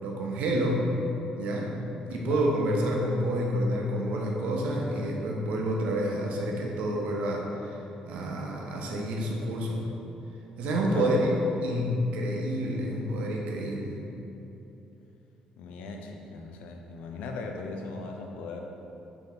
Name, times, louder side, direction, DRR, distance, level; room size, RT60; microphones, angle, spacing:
voice 1, 0.0-0.9 1.4-1.8 2.1-7.8 8.1-9.9 10.6-11.3 11.6-14.0, right 1 dB, 75° right, -1 dB, 0.6 m, -28 dB
voice 2, 2.0-2.5 10.9-11.1 15.6-18.6, left 3 dB, 85° left, 2 dB, 0.4 m, -39 dB
3.4 x 2.7 x 3.9 m, 3.0 s
cardioid pair, 140°, 2 cm